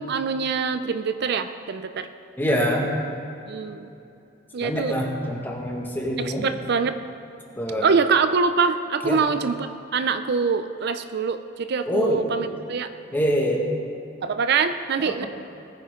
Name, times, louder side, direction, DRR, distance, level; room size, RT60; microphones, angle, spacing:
voice 1, 0.0-2.1 3.5-3.9 4.5-5.0 6.2-7.0 7.8-12.9 14.2-15.3, right 5 dB, 60° right, 10 dB, 0.5 m, -24 dB
voice 2, 2.4-2.9 4.6-6.5 7.6-7.9 9.0-9.2 11.9-12.3 13.1-13.6 15.1-15.3, equal, 10° left, -1 dB, 1.8 m, -25 dB
20.0 x 9.7 x 3.8 m, 2.7 s
head